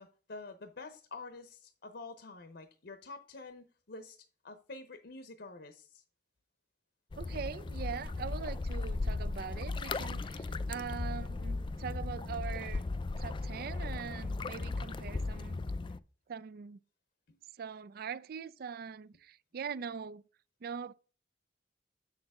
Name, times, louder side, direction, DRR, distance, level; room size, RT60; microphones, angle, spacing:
voice 1, 0.0-6.0 17.3-17.4, left 3 dB, 65° left, 0.8 m, -48 dB
sound 1, 7.1-16.0, left 3 dB, 25° left, 0.4 m, -36 dB
voice 2, 7.2-12.9 13.2-15.6 16.3-16.8 17.6-20.2 20.6-20.9, right 6 dB, 55° right, 0.4 m, -42 dB
7.4 x 6.5 x 3.6 m
head